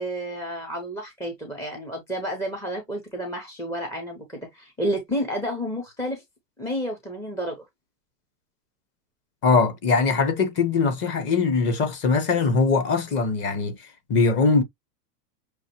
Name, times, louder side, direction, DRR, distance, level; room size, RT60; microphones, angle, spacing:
voice 1, 0.0-4.2 4.5-6.2 6.6-7.6, equal, 5° left, 0.5 m, -30 dB
voice 2, 9.4-14.6, left 4 dB, 25° left, 0.8 m, -21 dB
6.3 x 2.5 x 2.9 m
supercardioid pair, 150°, 49 cm